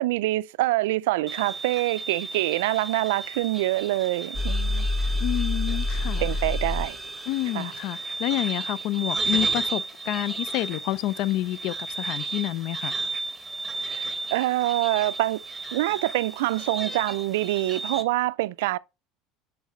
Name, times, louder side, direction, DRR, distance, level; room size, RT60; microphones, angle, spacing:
voice 1, 0.0-4.9 6.2-7.0 7.5-7.7 13.8-15.4 15.7-18.8, right 17 dB, 85° right, 0.3 m, -25 dB
sound 1, 1.3-18.0, right 3 dB, 10° right, 1.3 m, -33 dB
sound 2, 4.3-7.9, left 2 dB, 15° left, 0.8 m, -28 dB
voice 2, 5.2-6.2 7.3-13.0, left 15 dB, 65° left, 0.4 m, -29 dB
7.2 x 4.6 x 4.3 m
supercardioid pair, 110°, 0 cm